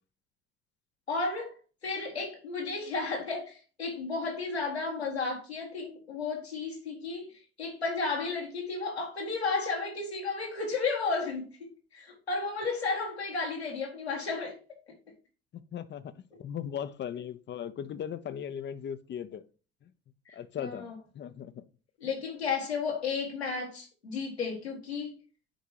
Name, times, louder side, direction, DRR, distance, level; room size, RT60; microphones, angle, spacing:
voice 1, 1.1-1.6 1.8-14.6 20.3-21.0 22.0-25.2, left 4 dB, 85° left, 1.9 m, -33 dB
voice 2, 15.5-19.4 20.3-21.6, left 9 dB, 35° left, 0.7 m, -38 dB
10.0 x 4.7 x 2.8 m
figure-of-eight pair, 50°, 31 cm